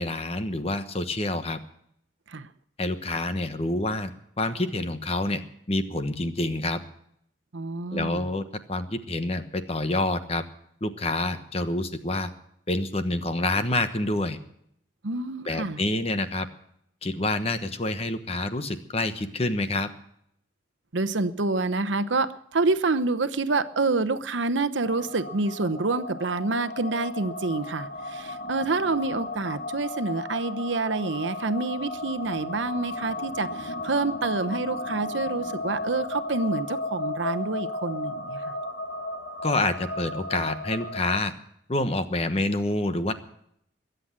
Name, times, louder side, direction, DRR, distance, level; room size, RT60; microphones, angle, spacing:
voice 1, 0.0-1.6 2.8-4.1 4.4-6.8 7.9-10.4 10.8-12.3 12.7-14.4 15.4-16.5 17.0-19.9 39.4-41.3 41.7-43.1, left 2 dB, 35° left, 9 dB, 1.1 m, -27 dB
voice 2, 7.5-8.3 15.0-15.8 20.9-38.4, right 3 dB, 85° right, 12 dB, 0.9 m, -27 dB
sound 1, 24.8-41.2, left 2 dB, 70° left, 1.4 m, -34 dB
22.0 x 8.1 x 7.4 m, 0.71 s
head